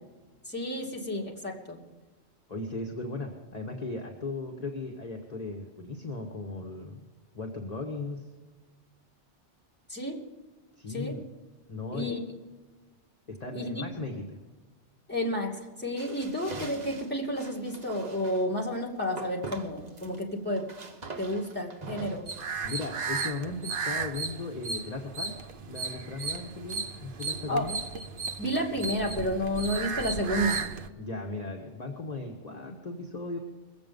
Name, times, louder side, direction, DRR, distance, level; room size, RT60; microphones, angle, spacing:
voice 1, 0.5-1.8 9.9-10.2 10.9-11.2 11.9-12.2 13.5-13.7 15.1-20.7 21.2-22.3 27.5-27.7 28.4-30.7, equal, 10° left, -3 dB, 2.6 m, -31 dB
voice 2, 2.5-7.0 7.3-8.3 10.8-11.2 11.7-12.1 13.3-14.4 22.6-25.3 25.7-27.8 31.0-33.4, left 3 dB, 35° left, 0 dB, 1.4 m, -37 dB
sound 1, 16.0-18.5 19.2-20.2 20.5-23.0, right 3 dB, 40° right, 1.2 m, -43 dB
sound 2, 22.3-30.9, right 4 dB, 55° right, 0.9 m, -35 dB
22.0 x 7.8 x 5.3 m, 1.3 s
omnidirectional pair, 1.2 m